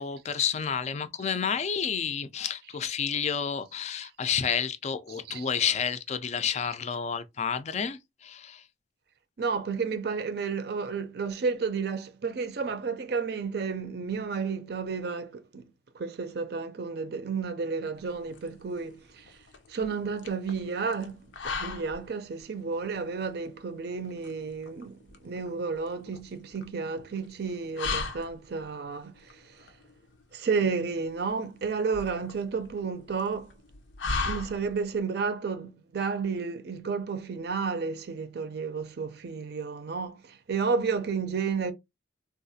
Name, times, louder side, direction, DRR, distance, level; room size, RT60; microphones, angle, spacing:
voice 1, 0.0-8.6, left 7 dB, 40° left, 0.4 m, -30 dB
voice 2, 5.1-5.5 9.4-19.4 19.7-21.2 21.4-29.6 30.3-33.5 34.2-41.7, right 5 dB, 60° right, 0.4 m, -32 dB
sound 1, 18.0-35.0, left 4 dB, 85° left, 0.6 m, -39 dB
3.6 x 2.4 x 2.6 m
head